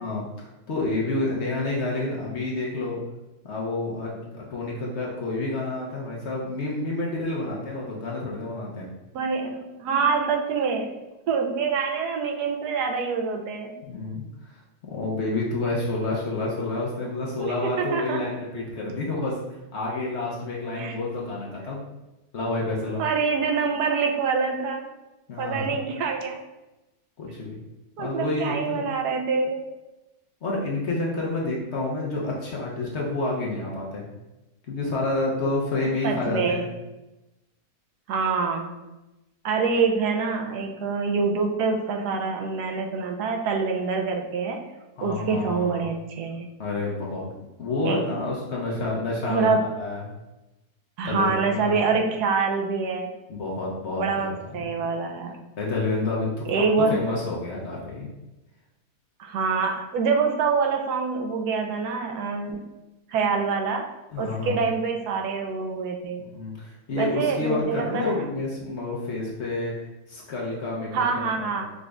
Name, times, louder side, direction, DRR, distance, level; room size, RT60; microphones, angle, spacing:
voice 1, 0.0-3.0 3.4-8.9 13.9-21.8 22.3-23.0 25.3-25.8 27.2-27.5 28.0-28.8 30.4-34.0 34.7-36.7 45.0-45.9 46.6-47.3 47.6-50.1 51.0-51.9 53.3-54.3 54.8-54.9 55.6-58.1 64.1-64.7 66.3-69.7 70.1-71.0 71.4-71.6, left 2 dB, 55° left, -3 dB, 0.9 m, -29 dB
voice 2, 9.1-10.9 11.3-13.8 17.4-18.2 20.8-21.0 23.0-24.9 25.4-26.4 28.0-29.6 36.0-36.6 38.1-38.7 39.4-44.6 45.0-46.5 47.9-48.0 49.3-49.7 51.0-53.1 54.0-55.4 56.5-56.9 59.2-62.6 63.1-63.9 64.2-66.3 67.0-68.1 70.9-71.7, right 5 dB, 85° right, 3 dB, 1.2 m, -25 dB
5.1 x 2.5 x 3.3 m, 0.99 s
omnidirectional pair, 1.7 m